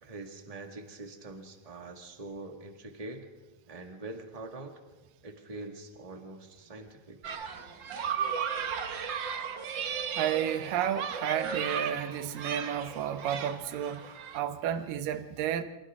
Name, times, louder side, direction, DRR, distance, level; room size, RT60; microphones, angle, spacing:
voice 1, 0.0-3.3 3.7-4.8 5.2-7.3, right 2 dB, 20° right, 1.0 m, -44 dB
sound 1, 7.2-14.4, right 7 dB, 70° right, 1.1 m, -35 dB
voice 2, 10.2-14.1 14.3-15.6, right 9 dB, 85° right, 2.6 m, -31 dB
28.5 x 26.5 x 3.7 m
omnidirectional pair, 3.8 m